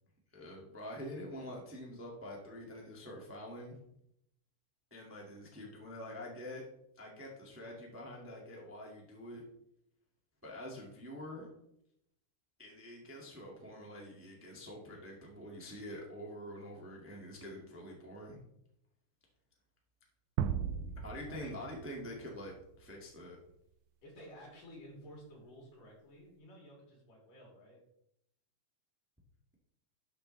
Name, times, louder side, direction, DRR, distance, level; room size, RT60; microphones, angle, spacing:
voice 1, 0.3-3.8 4.9-6.6 6.9-9.4 10.4-11.5 12.6-18.4 21.0-23.4, left 1 dB, 5° right, -1 dB, 1.0 m, -46 dB
sound 1, 20.4-22.8, right 8 dB, 80° right, 1.9 m, -37 dB
voice 2, 24.0-27.8, equal, 90° left, -3 dB, 4.9 m, -53 dB
12.0 x 7.0 x 3.2 m, 0.76 s
omnidirectional pair, 3.7 m